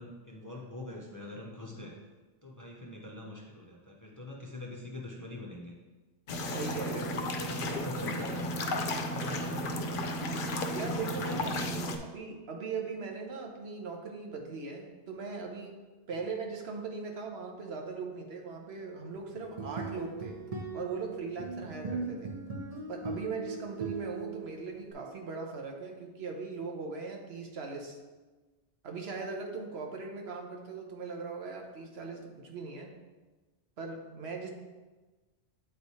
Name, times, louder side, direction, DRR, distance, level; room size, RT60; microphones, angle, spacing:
voice 1, 0.0-1.9 2.4-5.7 6.9-8.6 9.1-10.1 11.2-12.0, left 1 dB, 20° left, -2 dB, 0.6 m, -43 dB
sound 1, 6.3-12.0, left 1 dB, 60° left, 0.7 m, -33 dB
voice 2, 6.5-7.1 10.7-11.6 12.0-15.8 16.1-20.4 20.7-22.3 22.9-28.0 28.8-32.9 33.8-34.5, right 4 dB, 75° right, 1 dB, 1.1 m, -39 dB
sound 2, 19.4-24.9, right 3 dB, 35° right, 0.8 m, -39 dB
8.0 x 3.2 x 4.1 m, 1.2 s
omnidirectional pair, 1.1 m